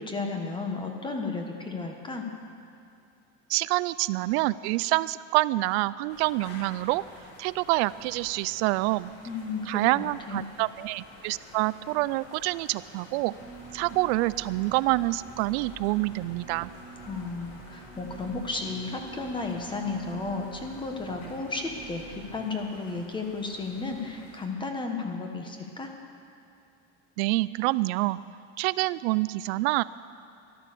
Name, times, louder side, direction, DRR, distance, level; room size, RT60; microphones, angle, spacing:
voice 1, 0.0-2.2 9.2-10.4 17.1-22.0 22.3-25.9, left 3 dB, 15° left, 3 dB, 1.2 m, -33 dB
voice 2, 3.5-7.0 7.4-9.1 9.7-13.3 13.7-16.7 27.2-28.2 28.6-29.8, right 20 dB, 80° right, 18 dB, 0.5 m, -27 dB
sound 1, 6.1-24.5, left 2 dB, 50° left, 2.5 m, -51 dB
sound 2, 13.4-22.4, right 4 dB, 10° right, 1.7 m, -46 dB
13.5 x 12.0 x 6.8 m, 2.6 s
cardioid pair, 160°, 32 cm